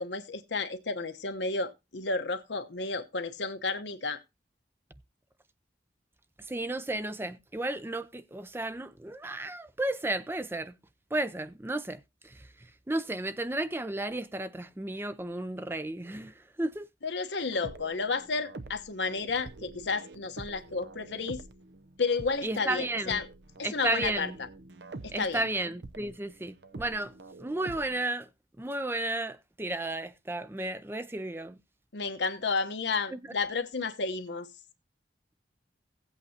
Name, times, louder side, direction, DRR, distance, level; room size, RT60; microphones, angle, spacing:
voice 1, 0.0-4.2 17.0-21.4 22.0-23.3 23.6-24.5 25.0-25.5 31.9-34.5, left 4 dB, 80° left, 1.0 m, -32 dB
voice 2, 6.5-10.8 11.1-16.9 22.4-23.2 23.6-24.4 25.1-28.3 28.6-31.6 33.1-33.2, right 2 dB, 15° right, 0.4 m, -33 dB
sound 1, 17.4-28.0, right 2 dB, 75° right, 0.7 m, -47 dB
16.0 x 8.3 x 2.8 m
head